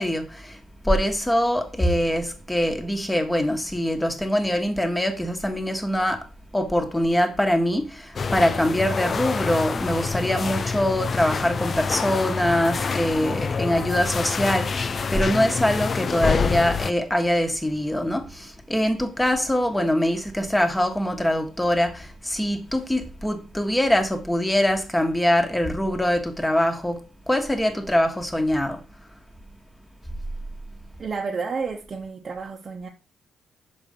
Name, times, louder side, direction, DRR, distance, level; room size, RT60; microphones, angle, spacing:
voice 1, 0.0-6.3 6.5-28.8, left 1 dB, 10° left, 1.4 m, -23 dB
sound 1, 8.2-16.9, left 5 dB, 40° left, 0.4 m, -27 dB
voice 2, 31.0-32.9, right 5 dB, 40° right, 1.1 m, -31 dB
6.1 x 5.3 x 5.2 m
cardioid pair, 90°, 0 cm